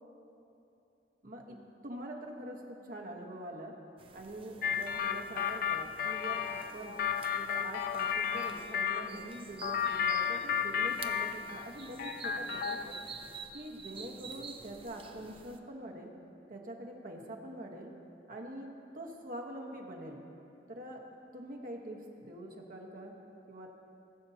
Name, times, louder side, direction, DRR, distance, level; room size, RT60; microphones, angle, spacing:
voice 1, 1.2-1.6 1.8-3.7 4.1-7.0 7.3-13.0 13.5-16.1 16.5-17.9 18.3-18.7 18.9-20.2 20.7-21.0 21.3-23.2 23.5-23.7, right 1 dB, 50° right, 0 dB, 1.2 m, -44 dB
sound 1, 4.0-15.6, right 5 dB, 30° right, 0.5 m, -50 dB
sound 2, 4.6-9.1 9.6-11.7 12.0-13.0, left 8 dB, 55° left, 0.4 m, -33 dB
19.5 x 6.9 x 2.8 m, 2.8 s
head